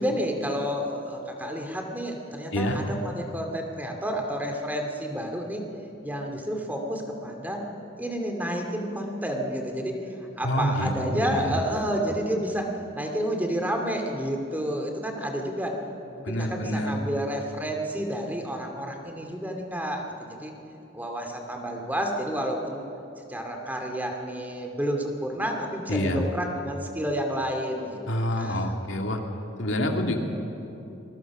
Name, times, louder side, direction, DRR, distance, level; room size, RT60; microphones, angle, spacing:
voice 1, 0.0-5.6 6.0-7.6 8.0-10.0 10.4-15.7 16.1-20.0 20.3-20.5 20.9-22.9 23.2-28.0 28.3-28.7, equal, 10° right, 2 dB, 2.4 m, -30 dB
voice 2, 10.4-11.6 16.2-17.0 25.9-26.2 28.1-29.2 29.6-30.2, left 1 dB, 70° left, 3 dB, 2.4 m, -27 dB
27.0 x 22.0 x 6.1 m, 2.9 s
head